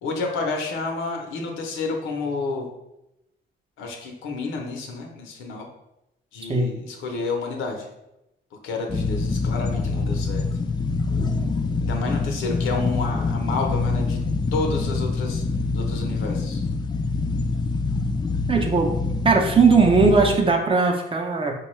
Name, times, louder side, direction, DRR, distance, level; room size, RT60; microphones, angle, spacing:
voice 1, 0.0-2.7 3.8-5.7 6.3-7.9 8.6-10.5 11.8-14.2 14.5-15.4 15.7-16.6, left 3 dB, 85° left, 2 dB, 0.7 m, -30 dB
sound 1, 8.9-20.4, left 3 dB, 20° left, 0.4 m, -25 dB
voice 2, 18.5-18.9 19.2-21.5, right 4 dB, 25° right, 2 dB, 0.6 m, -18 dB
4.5 x 2.3 x 3.1 m, 0.88 s
cardioid pair, 90°, 20 cm